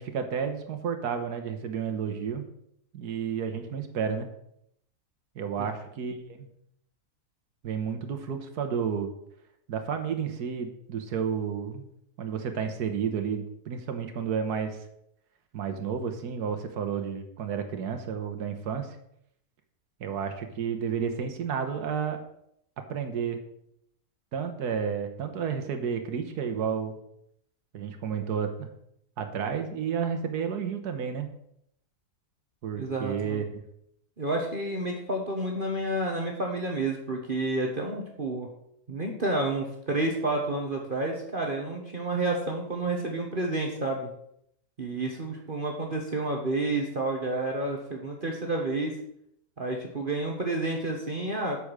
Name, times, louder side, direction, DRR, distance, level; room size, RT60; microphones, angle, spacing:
voice 1, 0.0-2.5 2.9-4.3 5.3-6.5 7.6-9.1 9.7-11.9 12.2-14.8 15.5-19.0 20.0-22.2 22.9-23.4 24.3-27.0 27.7-28.7 29.2-31.3 32.6-33.4, right 7 dB, 80° right, 6 dB, 1.6 m, -31 dB
voice 2, 32.8-33.4 34.2-38.5 38.9-44.1 44.8-49.0 49.6-51.6, right 2 dB, 35° right, 1 dB, 1.3 m, -30 dB
8.4 x 6.9 x 6.3 m, 0.73 s
omnidirectional pair, 1.7 m